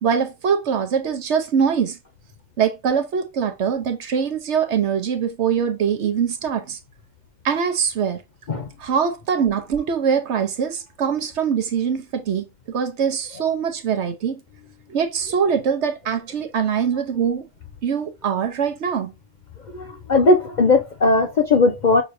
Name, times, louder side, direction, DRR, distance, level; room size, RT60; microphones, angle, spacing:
voice 1, 0.0-2.0 2.6-6.8 7.4-8.2 8.8-14.4 14.9-17.4 17.8-19.1, right 7 dB, 60° right, 1.0 m, -23 dB
voice 2, 19.7-22.0, left 3 dB, 50° left, 0.5 m, -18 dB
6.2 x 2.8 x 2.5 m
omnidirectional pair, 1.4 m